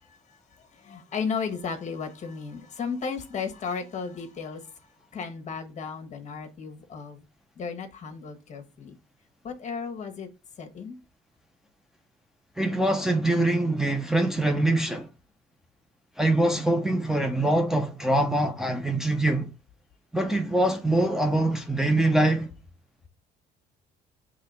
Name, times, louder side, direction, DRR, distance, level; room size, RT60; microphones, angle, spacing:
voice 1, 0.3-7.2 7.5-9.0 9.4-10.3 10.6-11.0, left 5 dB, 45° left, 1.5 m, -35 dB
voice 2, 12.6-15.1 16.2-19.5 20.1-22.5, right 1 dB, 5° right, 0.8 m, -24 dB
5.6 x 3.4 x 5.5 m
cardioid pair, 110°, 17 cm